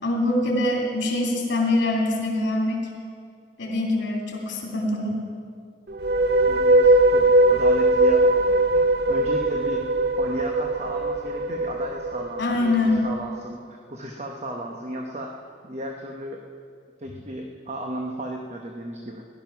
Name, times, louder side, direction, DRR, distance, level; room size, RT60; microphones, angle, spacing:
voice 1, 0.0-2.9 3.6-5.2 12.4-13.0, left 2 dB, 70° left, -1 dB, 2.8 m, -24 dB
sound 1, 5.9-13.2, right 2 dB, 55° right, 0.4 m, -20 dB
voice 2, 6.4-9.8 10.2-15.4 15.6-16.4 17.0-19.2, right 1 dB, 35° right, 1 dB, 0.9 m, -34 dB
16.5 x 11.5 x 5.9 m, 2.2 s
head